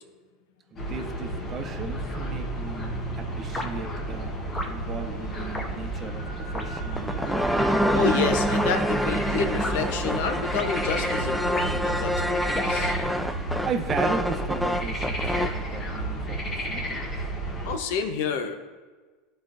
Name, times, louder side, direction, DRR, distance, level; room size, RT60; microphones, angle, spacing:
voice 1, 0.7-4.3 4.7-7.4 13.6-17.0, right 5 dB, 35° right, 6 dB, 0.8 m, -35 dB
sound 1, 0.8-17.8, right 1 dB, 35° left, 1.6 m, -32 dB
sound 2, 3.5-3.7 4.5-4.7 5.5-5.7 6.5-6.7 7.5-7.7 8.5-8.7 9.6-9.8 10.5-10.7 11.6-11.9 12.5-12.8, left 2 dB, 20° left, 0.9 m, -33 dB
sound 3, 6.8-15.6, equal, ahead, 0.4 m, -27 dB
voice 2, 7.9-12.1 12.5-12.9 17.6-18.6, left 6 dB, 75° left, 6 dB, 0.8 m, -29 dB
13.0 x 4.4 x 2.6 m, 1.4 s
supercardioid pair, 105°, 0 cm